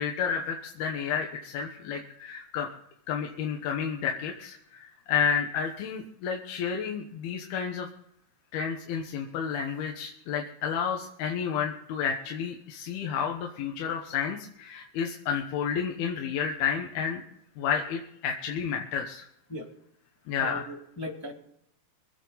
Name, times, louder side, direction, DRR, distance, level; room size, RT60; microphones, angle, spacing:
voice 1, 0.0-2.7 3.1-7.9 8.5-17.2 17.6-19.3 20.3-20.6, left 7 dB, 75° left, 2 dB, 3.0 m, -31 dB
voice 2, 20.4-21.3, equal, 15° left, -1 dB, 0.7 m, -37 dB
25.0 x 9.0 x 4.0 m, 0.74 s
omnidirectional pair, 4.7 m